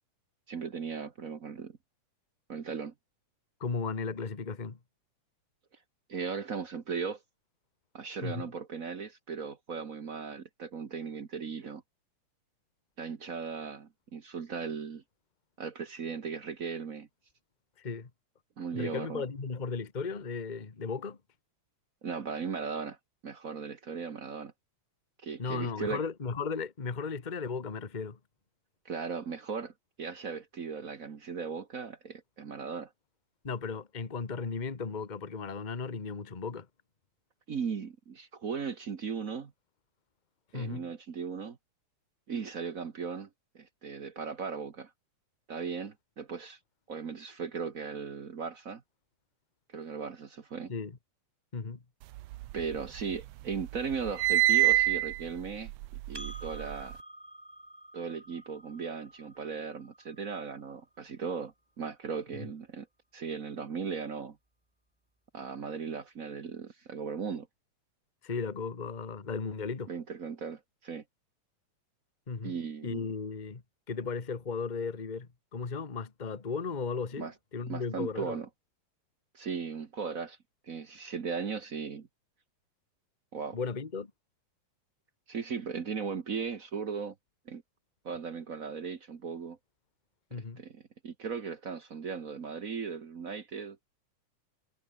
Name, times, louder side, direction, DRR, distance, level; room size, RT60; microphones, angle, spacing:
voice 1, 0.5-1.8 2.5-2.9 6.1-7.2 7.9-11.8 13.0-15.0 15.6-17.1 18.6-19.2 22.0-23.0 23.2-24.5 25.2-26.0 28.8-29.7 30.0-32.9 37.5-39.5 40.5-41.6 42.3-43.3 43.5-44.9 45.5-46.6 46.9-48.8 49.7-50.7 52.5-55.7 56.1-57.0 57.9-62.9 63.1-64.4 65.3-67.5 69.9-71.0 72.4-73.1 77.2-77.3 77.7-78.5 79.3-80.4 80.7-82.1 83.3-83.6 85.3-87.1 87.5-87.6 88.0-89.6 90.6-93.8, right 6 dB, 60° right, 0.8 m, -37 dB
voice 2, 3.6-4.8 8.2-8.5 17.8-18.1 18.7-21.2 25.4-28.2 33.4-36.7 40.5-40.8 50.7-50.9 51.5-51.8 62.4-62.5 68.2-69.9 72.3-72.5 72.8-73.6 73.9-78.4 83.5-84.1 90.3-90.6, left 5 dB, 85° left, 0.4 m, -35 dB
sound 1, 52.2-53.2 53.5-56.9, right 17 dB, 90° right, 1.4 m, -27 dB
Percussion, 56.1-61.0, right 1 dB, 5° right, 3.4 m, -50 dB
omnidirectional pair, 3.7 m